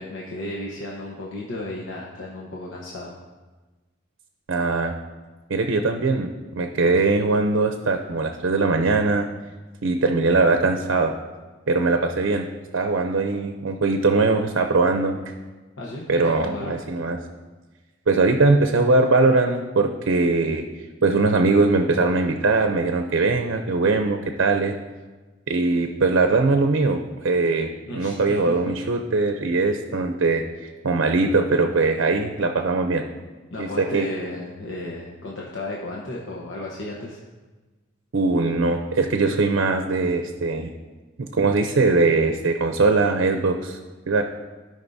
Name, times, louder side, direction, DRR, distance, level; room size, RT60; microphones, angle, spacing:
voice 1, 0.0-3.2 15.8-16.8 27.9-28.7 33.5-37.2, left 1 dB, 80° left, -3 dB, 1.0 m, -34 dB
voice 2, 4.5-4.9 5.5-9.3 9.8-11.1 11.7-12.5 12.7-15.2 16.1-17.2 18.1-20.6 21.0-24.7 25.5-30.4 30.8-33.0 33.6-34.0 38.1-40.7 41.2-43.8 44.1-44.2, right 3 dB, 90° right, 5 dB, 0.6 m, -21 dB
15.5 x 5.2 x 2.7 m, 1.3 s
head